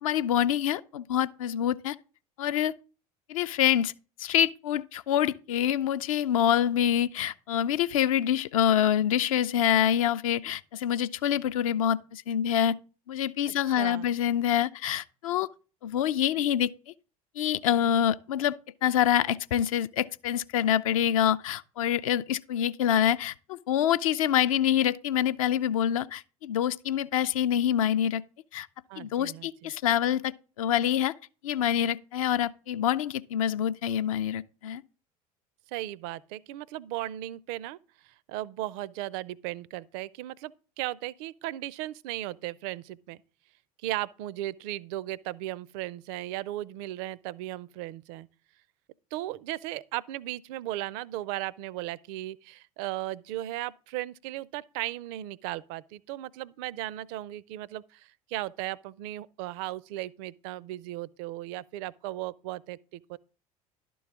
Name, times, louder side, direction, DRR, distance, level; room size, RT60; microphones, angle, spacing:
voice 1, 0.0-2.0 2.4-2.7 3.3-3.9 4.2-12.8 13.1-15.5 15.8-16.7 17.4-18.6 18.8-28.2 28.5-28.7 29.0-30.3 30.6-31.1 31.4-34.8, left 10 dB, 65° left, 0.5 m, -26 dB
voice 2, 13.5-14.1 28.9-29.7 35.7-37.8 38.3-43.2 43.8-48.3 49.1-63.2, right 15 dB, 50° right, 0.5 m, -36 dB
11.5 x 3.9 x 7.1 m
figure-of-eight pair, 65°, 19 cm